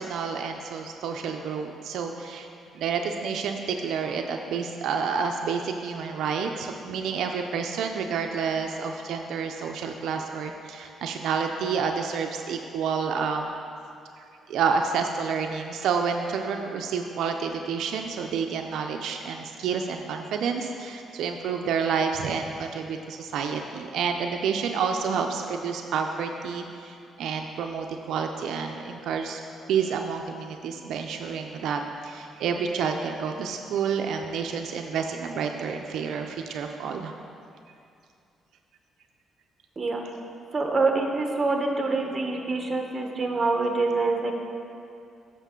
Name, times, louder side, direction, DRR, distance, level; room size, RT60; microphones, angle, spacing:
voice 1, 0.0-2.5 2.7-13.6 14.2-29.4 29.7-37.1, right 6 dB, 80° right, 3 dB, 0.4 m, -29 dB
voice 2, 40.5-44.3, right 3 dB, 30° right, 2 dB, 1.0 m, -25 dB
9.0 x 6.8 x 3.7 m, 2.5 s
cardioid pair, 90°, 0 cm